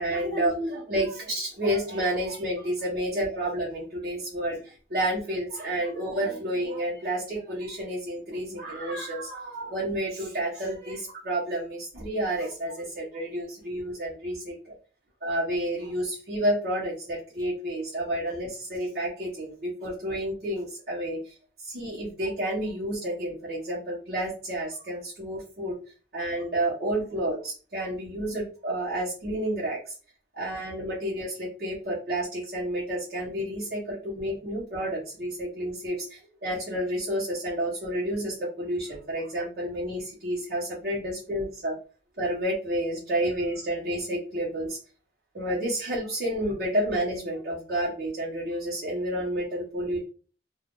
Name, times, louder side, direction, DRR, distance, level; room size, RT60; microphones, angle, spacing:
voice 1, 0.0-14.7 15.2-21.3 21.6-25.8 26.1-29.9 30.3-41.7 42.2-44.8 45.3-50.0, right 1 dB, 55° right, -7 dB, 1.2 m, -30 dB
2.7 x 2.5 x 3.7 m, 0.37 s
head